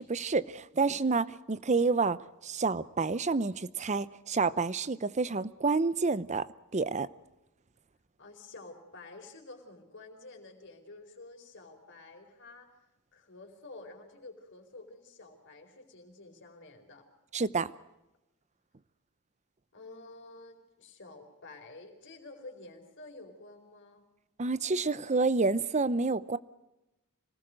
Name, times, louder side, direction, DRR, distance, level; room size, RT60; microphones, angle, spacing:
voice 1, 0.0-6.5 6.7-7.1 17.3-17.7 24.4-26.4, right 4 dB, 30° right, 0.7 m, -29 dB
voice 2, 8.2-12.7 13.1-17.0 19.7-24.1, left 2 dB, 55° left, 4.6 m, -50 dB
26.0 x 19.0 x 6.4 m
head